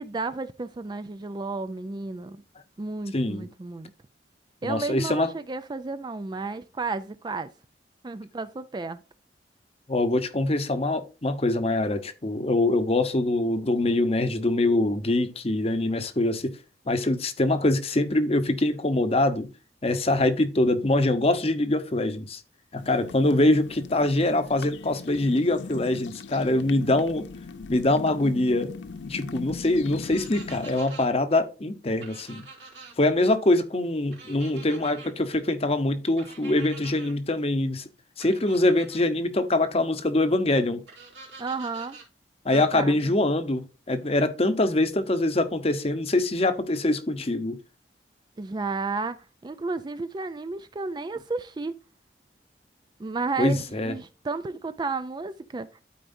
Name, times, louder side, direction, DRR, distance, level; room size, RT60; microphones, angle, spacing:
voice 1, 0.0-2.4 2.8-3.9 4.6-7.5 8.0-9.0 41.4-42.0 42.5-43.2 48.4-49.2 49.4-51.7 53.0-55.8, right 3 dB, 25° right, 0.4 m, -32 dB
voice 2, 3.1-3.5 4.6-5.3 9.9-16.6 16.9-19.5 19.8-22.4 22.7-27.2 27.7-28.8 29.1-32.4 33.0-37.9 38.2-40.8 42.4-47.6 53.4-53.9, left 2 dB, 35° left, 0.8 m, -24 dB
sound 1, 22.8-30.8, left 4 dB, 90° left, 0.6 m, -39 dB
sound 2, 30.0-31.1 32.0-32.9 34.1-35.1 36.2-37.1 38.2-39.0 40.9-42.1, right 4 dB, 75° right, 3.0 m, -46 dB
12.5 x 4.5 x 2.6 m
head